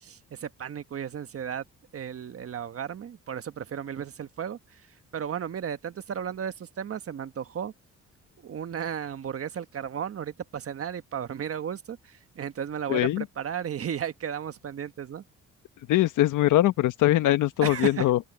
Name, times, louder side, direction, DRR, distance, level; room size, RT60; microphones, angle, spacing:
voice 1, 0.0-1.6 1.9-4.6 5.1-7.7 8.4-15.2 17.6-18.0, right 8 dB, 50° right, 1.4 m, -34 dB
voice 2, 12.9-13.2 15.9-18.2, left 14 dB, 85° left, 1.4 m, -22 dB
cardioid pair, 90°, 30 cm